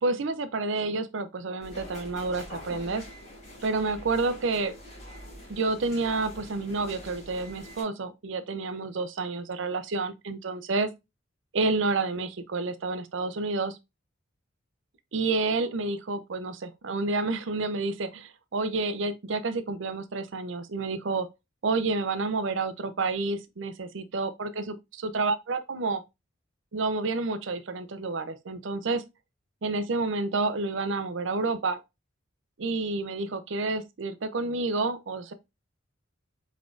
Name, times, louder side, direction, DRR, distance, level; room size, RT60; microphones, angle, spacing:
voice 1, 0.0-3.0 3.6-4.7 5.5-10.9 11.5-13.8 15.1-21.3 21.6-24.7 25.0-26.0 26.7-29.0 29.6-31.8 32.6-35.3, right 3 dB, 70° right, 0.6 m, -29 dB
sound 1, 1.6-7.8, equal, 35° left, 2.6 m, -45 dB
4.6 x 4.1 x 2.5 m
head